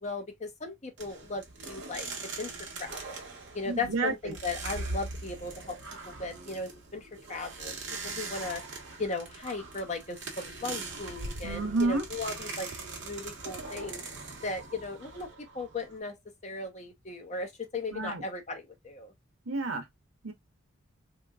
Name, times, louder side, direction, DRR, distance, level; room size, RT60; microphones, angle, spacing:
voice 1, 0.0-2.1 2.4-3.2 3.5-5.8 6.1-8.6 9.0-14.0 14.4-15.3 15.5-16.1 16.4-19.1, left 3 dB, 35° left, 0.8 m, -37 dB
sound 1, 1.0-16.0, right 3 dB, 60° right, 1.1 m, -41 dB
voice 2, 3.6-4.3 11.4-12.0 17.9-18.2 19.5-19.9 20.2-20.3, right 3 dB, 85° right, 0.9 m, -30 dB
3.3 x 2.9 x 2.3 m
head